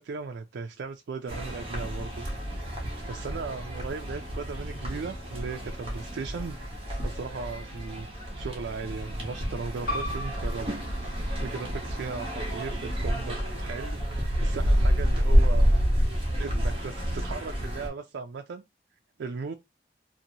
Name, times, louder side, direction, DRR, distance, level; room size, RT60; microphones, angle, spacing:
voice 1, 0.0-2.5 3.1-6.6 7.0-8.1 8.4-10.7 11.4-15.7 16.4-18.6 19.2-19.6, right 4 dB, 85° right, 0.4 m, -37 dB
sound 1, 1.3-17.9, equal, 30° right, 1.0 m, -28 dB
sound 2, 8.3-12.1 12.4-12.6 12.8-13.4, right 3 dB, 70° right, 0.8 m, -54 dB
sound 3, 9.9-15.0, left 1 dB, 55° left, 1.1 m, -41 dB
2.7 x 2.6 x 2.7 m
head